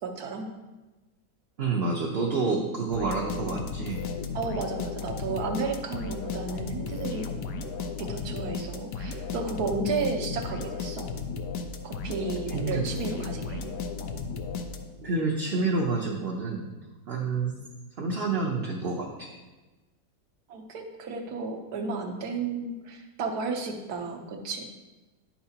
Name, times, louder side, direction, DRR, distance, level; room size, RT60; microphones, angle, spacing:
voice 1, 0.0-0.5 4.3-7.3 7.8-11.1 11.8-13.6 20.5-24.7, right 4 dB, 65° right, 3 dB, 1.4 m, -33 dB
voice 2, 1.6-4.0 12.5-12.8 15.0-16.7 17.1-17.5 18.0-19.3, right 3 dB, 45° right, -1 dB, 0.8 m, -28 dB
sound 1, 2.9-15.1, left 5 dB, 80° left, 1.3 m, -35 dB
10.5 x 5.8 x 2.8 m, 1.2 s
omnidirectional pair, 1.8 m